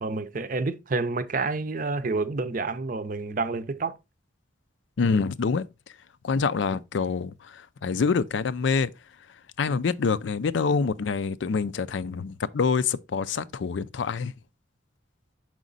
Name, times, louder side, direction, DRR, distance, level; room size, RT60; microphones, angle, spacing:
voice 1, 0.0-3.9, right 3 dB, 45° right, 0.6 m, -29 dB
voice 2, 5.0-5.7 6.2-8.9 9.6-14.3, left 5 dB, 75° left, 0.4 m, -26 dB
6.1 x 5.0 x 3.9 m
head